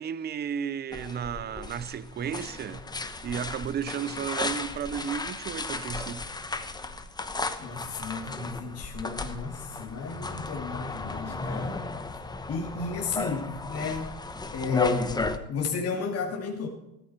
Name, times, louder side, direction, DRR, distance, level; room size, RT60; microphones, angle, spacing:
voice 1, 0.0-2.8 3.2-6.3, right 8 dB, 20° right, 0.6 m, -33 dB
sound 1, 0.9-15.4, left 3 dB, 10° left, 1.0 m, -35 dB
voice 2, 7.6-11.9 12.5-14.1 14.5-16.7, left 4 dB, 30° left, 2.5 m, -33 dB
15.0 x 13.5 x 4.4 m
supercardioid pair, 105°, 46 cm